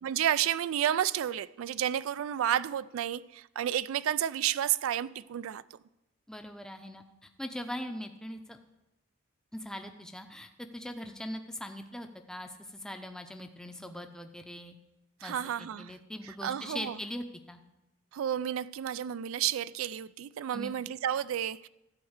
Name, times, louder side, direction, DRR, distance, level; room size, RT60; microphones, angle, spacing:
voice 1, 0.0-5.8 15.2-15.9 16.2-17.0 18.1-21.7, right 10 dB, 85° right, 0.3 m, -31 dB
voice 2, 6.3-8.6 9.5-14.7 15.2-17.6 20.5-20.7, left 1 dB, 5° left, 0.5 m, -41 dB
12.5 x 4.5 x 7.9 m
head